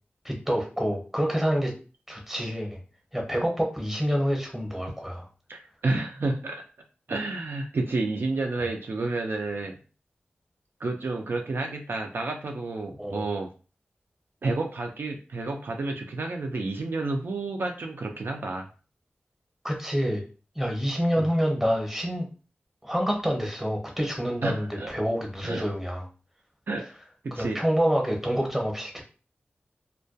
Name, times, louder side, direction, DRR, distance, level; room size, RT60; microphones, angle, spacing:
voice 1, 0.2-1.7 2.1-2.8 3.1-5.3 13.0-13.3 19.6-20.2 20.6-22.3 22.8-26.1 27.3-29.0, equal, 5° right, 1 dB, 0.7 m, -27 dB
voice 2, 5.5-6.6 7.1-9.8 10.8-13.5 14.4-18.7 21.2-21.3 24.4-24.9 25.4-25.7 26.7-26.9 27.2-27.6, right 3 dB, 65° right, 2 dB, 0.3 m, -30 dB
2.2 x 2.2 x 2.6 m, 0.36 s
wide cardioid pair, 65°, 4 cm